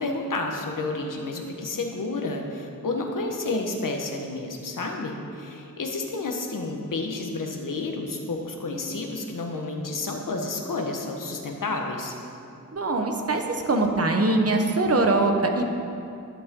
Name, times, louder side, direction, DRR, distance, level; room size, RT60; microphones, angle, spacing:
voice 1, 0.0-12.1, left 3 dB, 65° left, 2 dB, 1.4 m, -30 dB
voice 2, 12.7-15.7, right 2 dB, 40° right, 3 dB, 1.1 m, -22 dB
12.0 x 11.0 x 3.8 m, 2.6 s
wide cardioid pair, 120°, 35 cm